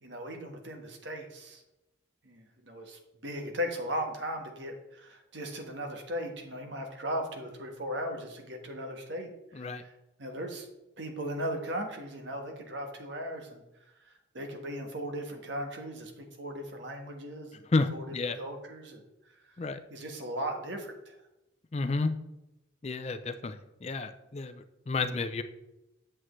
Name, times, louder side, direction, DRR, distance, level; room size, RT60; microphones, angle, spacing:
voice 1, 0.0-1.6 2.2-9.9 10.2-10.7 11.0-13.6 14.0-17.6 17.9-18.0 18.3-19.0 19.9-21.1, equal, 75° right, 3 dB, 1.4 m, -37 dB
voice 2, 17.7-18.4 19.6-19.8 21.7-22.1 22.8-25.4, left 3 dB, 35° left, 10 dB, 0.4 m, -31 dB
8.8 x 7.4 x 3.2 m, 0.94 s
head